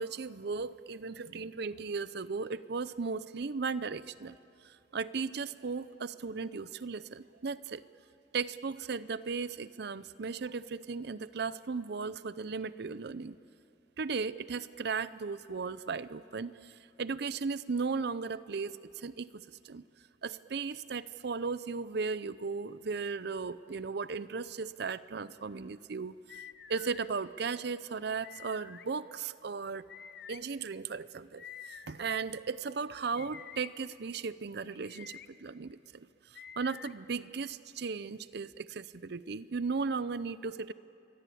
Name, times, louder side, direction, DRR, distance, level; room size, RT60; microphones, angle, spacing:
voice 1, 0.0-4.3 4.6-7.8 8.3-13.4 14.0-19.8 20.2-26.4 26.7-29.9 30.3-40.7, right 4 dB, 60° right, 16 dB, 0.6 m, -36 dB
sound 1, 26.3-27.1 28.2-28.9 29.9-30.4 31.4-32.2 33.1-33.7 34.7-35.3 36.3-36.9, left 8 dB, 60° left, 1.0 m, -48 dB
29.0 x 23.0 x 8.5 m, 2.6 s
head